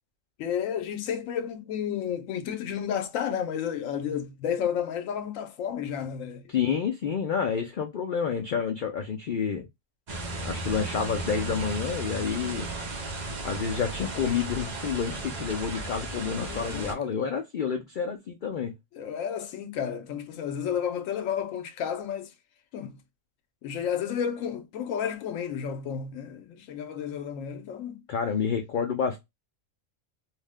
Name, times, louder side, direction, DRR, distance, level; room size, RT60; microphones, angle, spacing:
voice 1, 0.4-6.5 16.5-17.2 18.9-22.3 22.7-23.0 23.6-28.0, left 8 dB, 80° left, 1.0 m, -32 dB
voice 2, 6.5-9.7 10.4-12.7 13.4-18.7 28.1-29.2, left 6 dB, 65° left, 0.5 m, -29 dB
sound 1, 10.1-16.9, right 2 dB, 45° right, 0.6 m, -35 dB
2.6 x 2.1 x 3.4 m
omnidirectional pair, 1.4 m